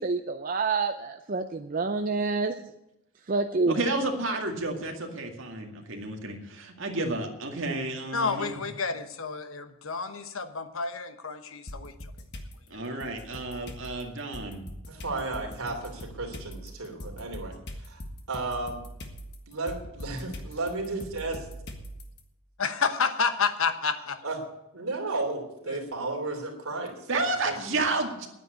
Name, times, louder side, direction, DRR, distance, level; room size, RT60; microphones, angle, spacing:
voice 1, 0.0-2.6 3.3-3.8, right 3 dB, 40° right, 7 dB, 0.5 m, -27 dB
voice 2, 3.7-8.6 12.7-14.6 27.1-28.3, right 2 dB, 60° right, 2 dB, 2.1 m, -31 dB
voice 3, 8.1-11.9 22.6-24.2 25.7-25.8, left 5 dB, 70° left, 9 dB, 1.1 m, -29 dB
sound 1, 11.7-12.5 13.0-22.2, equal, 50° left, 1.6 m, -42 dB
voice 4, 14.9-17.6 17.8-18.0 18.3-18.8 19.5-21.4 24.2-24.4 24.7-27.5, right 3 dB, 80° right, 3 dB, 3.0 m, -33 dB
10.0 x 9.7 x 8.2 m, 0.86 s
head